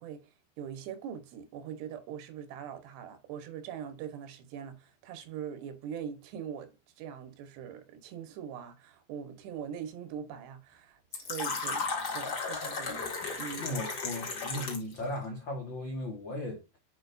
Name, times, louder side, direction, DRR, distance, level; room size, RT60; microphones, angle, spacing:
voice 1, 0.0-6.7 7.0-11.9 12.1-13.1 13.4-13.7, right 8 dB, 85° right, 3.3 m, -42 dB
sound 1, 9.5-9.6 11.5-14.9, left 5 dB, 55° left, 3.7 m, -51 dB
Fill (with liquid), 11.1-15.0, left 4 dB, 35° left, 1.7 m, -35 dB
voice 2, 13.6-16.6, left 1 dB, 75° left, 1.0 m, -36 dB
8.8 x 4.8 x 2.6 m
omnidirectional pair, 4.7 m